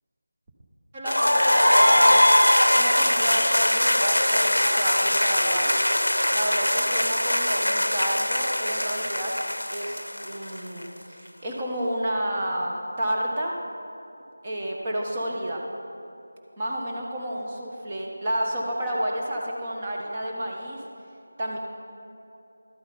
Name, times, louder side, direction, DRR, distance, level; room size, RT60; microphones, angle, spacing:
voice 1, 0.9-2.3 2.7-5.7 6.3-9.3 9.7-13.6 14.4-15.6 16.6-20.8 21.4-21.6, right 1 dB, 25° right, -2 dB, 1.2 m, -30 dB
sound 1, 1.1-10.8, left 1 dB, 85° left, 0.7 m, -21 dB
12.0 x 8.7 x 5.4 m, 2.8 s
figure-of-eight pair, 165°, 0 cm